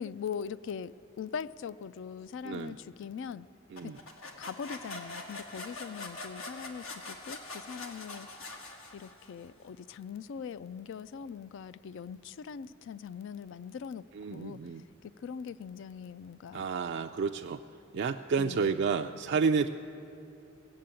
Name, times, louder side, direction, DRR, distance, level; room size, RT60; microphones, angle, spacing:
voice 1, 0.0-3.5 3.8-3.9 4.4-8.3 8.9-16.7 18.4-18.7, left 7 dB, 65° left, 17 dB, 0.3 m, -41 dB
voice 2, 2.4-2.8 3.7-4.0 14.1-14.8 16.5-17.6 17.9-19.7, right 5 dB, 55° right, 5 dB, 0.3 m, -30 dB
sound 1, 3.8-9.4, left 2 dB, 90° left, 1.7 m, -44 dB
18.0 x 7.6 x 8.8 m, 2.7 s
head